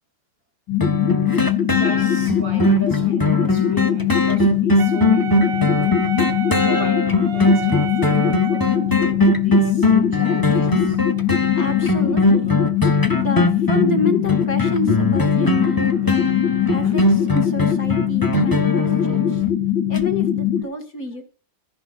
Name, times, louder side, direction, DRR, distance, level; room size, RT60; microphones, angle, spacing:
sound 1, 0.7-20.6, left 10 dB, 75° left, 2.6 m, -21 dB
sound 2, 0.8-19.5 20.0-20.1, left 1 dB, 15° left, 0.7 m, -20 dB
voice 1, 1.7-5.9 6.5-11.0 16.8-17.1, equal, 50° right, 1 dB, 8.3 m, -36 dB
Wind instrument woodwind instrument, 4.8-9.0, right 7 dB, 75° right, 1.7 m, -30 dB
voice 2, 11.6-12.7 13.1-16.3 16.7-19.4 19.9-21.2, left 1 dB, 50° left, 6 dB, 2.5 m, -28 dB
25.5 x 10.5 x 2.4 m, 0.37 s
omnidirectional pair, 2.0 m